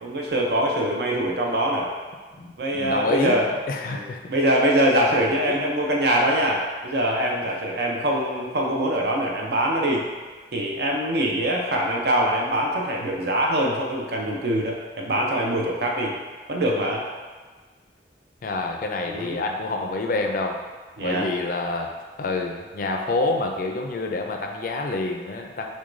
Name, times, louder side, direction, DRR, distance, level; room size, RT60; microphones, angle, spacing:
voice 1, 0.0-1.9 2.6-3.5 3.9-10.1 10.5-16.1 16.5-17.0 19.1-19.4 21.0-21.3, right 1 dB, 65° right, -1 dB, 0.5 m, -23 dB
voice 2, 2.4-4.2 5.5-5.6 18.4-20.6 21.0-21.9 22.2-25.7, left 2 dB, 50° left, 3 dB, 0.4 m, -27 dB
6.0 x 2.2 x 2.5 m, 1.4 s
head